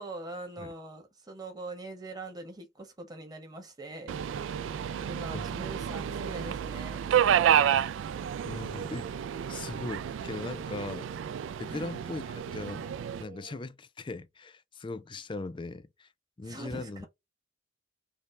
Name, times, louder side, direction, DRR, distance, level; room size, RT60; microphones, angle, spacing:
voice 1, 0.0-4.2 5.0-7.0 11.7-11.9 16.4-17.1, right 2 dB, 20° right, 1.2 m, -42 dB
Subway metro underground, 4.1-13.2, right 9 dB, 75° right, 0.3 m, -30 dB
Singing, 4.2-13.6, right 4 dB, 50° right, 0.8 m, -50 dB
voice 2, 8.4-9.1 9.5-11.1 11.6-12.9 13.2-16.1 16.4-17.0, left 3 dB, 25° left, 0.4 m, -39 dB
5.3 x 2.2 x 3.2 m
head